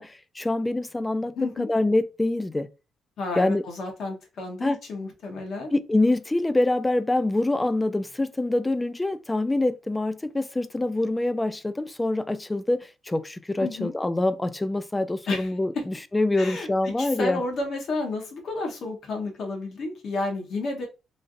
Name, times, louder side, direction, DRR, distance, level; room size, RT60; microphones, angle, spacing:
voice 1, 0.0-2.7 3.4-3.6 4.6-4.8 5.7-17.4, left 2 dB, 15° left, 0.3 m, -25 dB
voice 2, 1.3-1.7 3.2-5.7 13.6-13.9 15.3-15.5 15.7-15.8 16.4-20.9, left 2 dB, 65° left, 1.0 m, -31 dB
3.2 x 2.5 x 2.5 m
cardioid pair, 90°, 0 cm